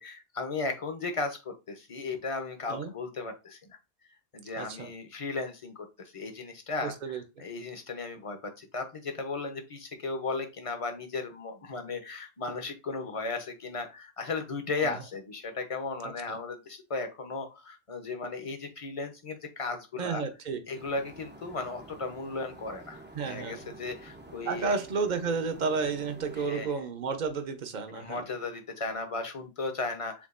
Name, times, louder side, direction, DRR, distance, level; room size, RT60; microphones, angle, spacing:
voice 1, 0.0-3.8 4.3-20.2 20.7-24.7 26.4-26.7 27.9-30.3, left 3 dB, 35° left, 6 dB, 0.8 m, -36 dB
voice 2, 4.6-4.9 6.8-7.2 14.8-15.0 16.0-16.4 20.0-20.6 23.1-23.7 24.4-28.2, right 5 dB, 50° right, 7 dB, 0.9 m, -32 dB
sound 1, 20.8-26.7, right 2 dB, 15° right, 0.5 m, -49 dB
7.1 x 2.4 x 2.5 m, 0.27 s
omnidirectional pair, 1.1 m